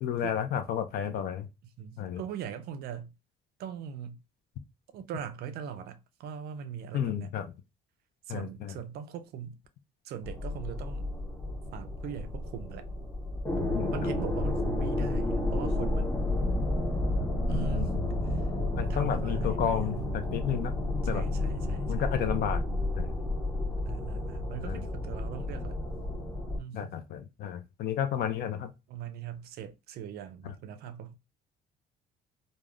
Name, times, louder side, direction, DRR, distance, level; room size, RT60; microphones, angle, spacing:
voice 1, 0.0-1.5 2.0-2.2 6.9-7.5 8.3-8.8 13.7-14.1 17.5-18.1 18.8-20.7 21.1-21.2 21.9-22.6 23.0-23.1 24.7-24.8 26.7-28.7, left 9 dB, 65° left, 0.4 m, -32 dB
voice 2, 1.8-3.1 3.6-4.2 4.9-7.3 8.3-9.6 10.0-11.1 11.7-12.9 13.9-16.2 17.5-17.9 18.8-19.9 21.0-22.2 23.9-25.8 26.6-26.9 28.9-31.2, right 7 dB, 70° right, 0.4 m, -40 dB
sound 1, 10.2-26.6, left 1 dB, 10° left, 0.6 m, -31 dB
3.4 x 2.0 x 2.3 m
cardioid pair, 110°, 17 cm